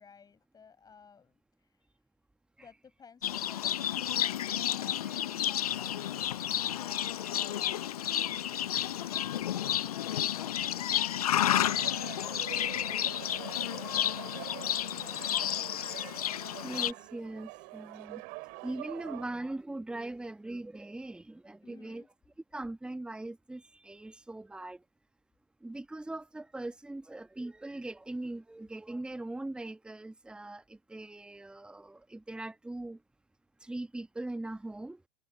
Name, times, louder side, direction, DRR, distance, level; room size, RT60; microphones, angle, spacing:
voice 1, 0.0-1.8 2.6-8.5 21.6-22.1, left 6 dB, 20° left, 5.7 m, -59 dB
Livestock farm animals working animals, 3.2-16.9, left 11 dB, 65° left, 0.8 m, -31 dB
voice 2, 7.2-7.6 11.5-12.1 12.9-13.0 13.5-13.9 14.6-16.3 16.6-18.2 18.6-22.0 22.5-24.8 25.6-33.0 33.6-35.0, right 2 dB, 5° right, 1.4 m, -41 dB
sound 1, 11.5-19.3, right 30 dB, 45° right, 6.7 m, -45 dB
figure-of-eight pair, 90°, 20 cm